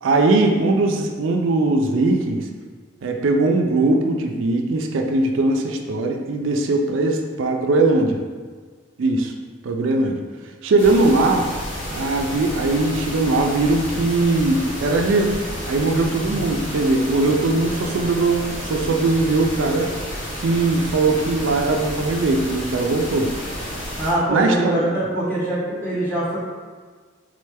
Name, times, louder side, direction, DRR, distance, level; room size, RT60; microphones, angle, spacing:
voice 1, 0.0-2.5 3.0-8.2 9.0-9.3 9.6-10.2 10.6-11.5 11.9-15.4 15.7-19.9 20.4-23.3 24.3-24.9, right 2 dB, 80° right, 3 dB, 0.4 m, -20 dB
sound 1, 10.8-24.1, equal, 75° left, 1.2 m, -31 dB
voice 2, 16.1-16.8 24.0-26.4, right 1 dB, 10° left, -10 dB, 1.2 m, -24 dB
3.7 x 3.2 x 3.4 m, 1.5 s
head